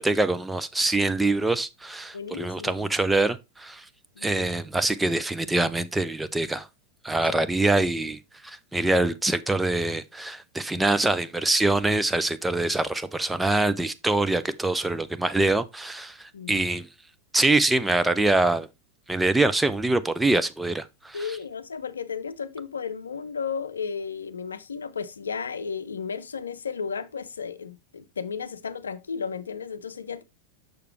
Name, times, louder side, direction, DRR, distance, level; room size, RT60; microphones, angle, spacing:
voice 1, 0.0-3.8 4.2-6.7 7.0-16.9 17.3-18.7 19.1-21.3, right 2 dB, 5° right, 0.5 m, -24 dB
voice 2, 2.1-2.9 4.2-4.5 7.3-7.4 16.3-16.7 21.1-30.2, left 6 dB, 70° left, 0.6 m, -34 dB
6.7 x 6.5 x 3.2 m
figure-of-eight pair, 90°, 0 cm